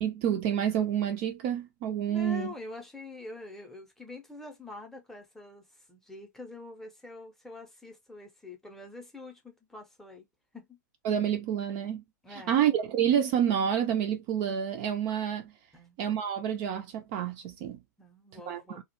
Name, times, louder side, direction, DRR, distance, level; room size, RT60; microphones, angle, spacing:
voice 1, 0.0-2.5 11.0-12.0 12.3-15.5 16.0-17.8 18.5-18.6, right 9 dB, 40° right, 0.4 m, -28 dB
voice 2, 2.1-10.3 10.5-10.8 12.2-12.8 15.7-16.0 18.0-18.8, left 3 dB, 5° left, 0.7 m, -45 dB
2.4 x 2.1 x 2.9 m
figure-of-eight pair, 95°, 10 cm